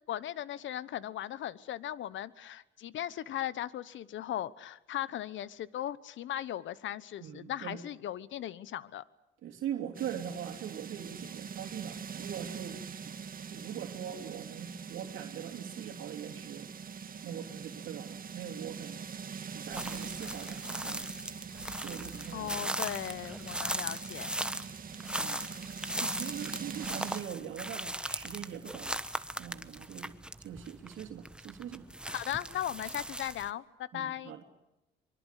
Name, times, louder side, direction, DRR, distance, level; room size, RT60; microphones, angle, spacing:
voice 1, 0.1-9.0 22.3-24.5 32.1-34.3, left 11 dB, 75° left, 18 dB, 1.1 m, -38 dB
voice 2, 7.2-7.8 9.4-12.8 13.5-16.7 17.2-19.0 19.4-21.1 21.8-22.7 25.2-25.4 26.0-29.0 29.4-31.9 33.9-34.4, right 9 dB, 80° right, 0 dB, 3.1 m, -42 dB
sound 1, 9.9-27.2, right 6 dB, 45° right, 1.7 m, -43 dB
sound 2, 19.7-33.5, right 1 dB, 5° right, 1.2 m, -38 dB
24.5 x 23.5 x 8.3 m, 0.88 s
cardioid pair, 90°, 20 cm